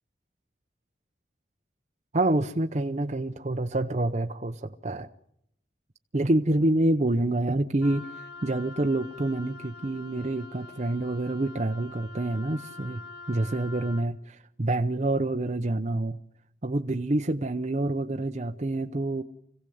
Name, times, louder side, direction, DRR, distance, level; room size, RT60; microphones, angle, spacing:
voice 1, 2.1-5.1 6.1-8.1 8.4-16.2 16.6-19.2, right 2 dB, 40° right, 4 dB, 0.8 m, -27 dB
Wind instrument woodwind instrument, 7.8-14.1, left 3 dB, 60° left, 1.7 m, -45 dB
26.0 x 16.5 x 7.9 m, 0.76 s
head